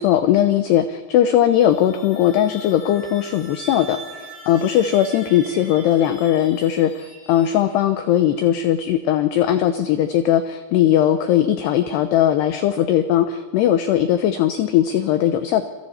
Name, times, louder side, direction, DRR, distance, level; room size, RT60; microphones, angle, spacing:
voice 1, 0.0-15.6, left 11 dB, 75° left, 9 dB, 2.5 m, -19 dB
sound 1, 1.5-8.0, right 2 dB, 25° left, 5.4 m, -41 dB
27.5 x 26.5 x 4.4 m, 1.5 s
omnidirectional pair, 5.6 m